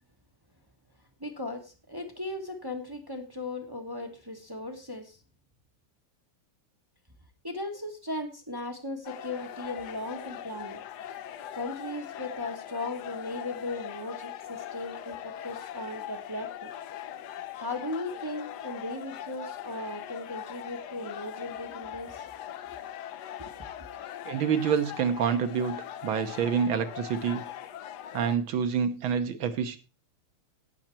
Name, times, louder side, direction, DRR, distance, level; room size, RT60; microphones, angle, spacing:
voice 1, 1.2-5.2 7.4-10.8 11.5-16.7 17.6-22.3 23.4-23.5, left 2 dB, 15° right, 5 dB, 0.7 m, -37 dB
sound 1, 9.0-28.4, left 11 dB, 70° left, 1.0 m, -41 dB
voice 2, 24.3-25.8 26.0-27.5 28.1-29.8, right 7 dB, 70° right, 9 dB, 1.8 m, -27 dB
16.5 x 6.5 x 4.4 m, 0.33 s
omnidirectional pair, 2.4 m